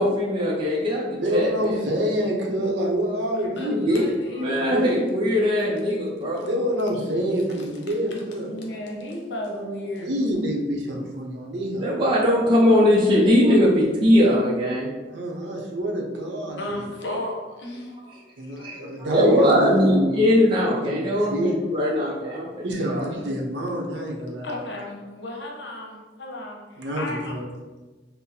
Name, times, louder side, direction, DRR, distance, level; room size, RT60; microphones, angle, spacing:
voice 1, 0.0-1.8 3.6-6.5 11.8-14.9 18.6-18.8 19.1-23.0, equal, 30° right, -6 dB, 0.5 m, -20 dB
voice 2, 1.2-4.9 6.4-8.5 9.5-9.7 10.0-11.9 15.1-16.9 18.4-20.2 20.8-21.5 22.6-24.5 26.8-27.5, equal, 85° right, -1 dB, 0.7 m, -27 dB
voice 3, 3.6-4.9 5.5-6.0 8.5-10.4 16.6-17.9 18.4-18.5 18.8-19.0 24.4-27.3, left 1 dB, 80° left, -1 dB, 0.8 m, -34 dB
5.5 x 2.1 x 2.8 m, 1.3 s
head